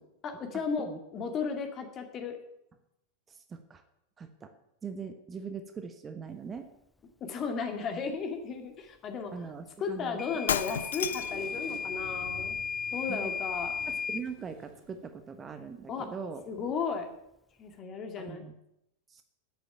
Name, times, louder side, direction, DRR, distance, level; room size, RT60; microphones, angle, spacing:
voice 1, 0.2-0.9 1.1-2.4 7.2-9.3 9.8-12.6 12.9-13.8 15.9-16.1 16.5-17.1 17.6-18.5, left 5 dB, 30° left, 5 dB, 2.2 m, -34 dB
voice 2, 3.5-3.8 4.2-4.5 4.8-6.7 9.3-10.2 13.1-13.3 13.9-16.4 18.2-18.5 19.1-19.2, right 5 dB, 20° right, 7 dB, 1.1 m, -41 dB
Microwave oven / Alarm, 10.2-14.3, left 6 dB, 10° left, 0.5 m, -35 dB
Shatter, 10.5-11.5, left 9 dB, 65° left, 0.5 m, -31 dB
sound 1, 11.0-15.1, right 2 dB, 50° right, 4.3 m, -49 dB
10.5 x 8.5 x 8.8 m, 0.82 s
figure-of-eight pair, 90°, 0 cm